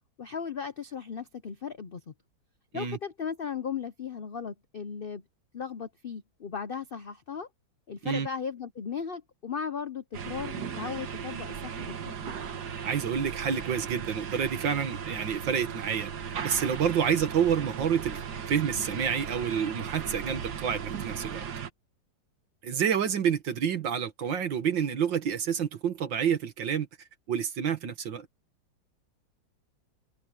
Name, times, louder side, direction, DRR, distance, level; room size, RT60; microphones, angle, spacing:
voice 1, 0.2-2.1 2.7-5.2 5.5-7.5 7.9-12.3, left 6 dB, 85° left, 0.4 m, -36 dB
sound 1, 10.1-21.7, right 7 dB, 60° right, 1.9 m, -37 dB
voice 2, 12.8-16.1 16.4-18.2 18.5-21.4 22.6-26.9 27.3-28.3, right 8 dB, 75° right, 2.3 m, -28 dB
omnidirectional pair, 2.0 m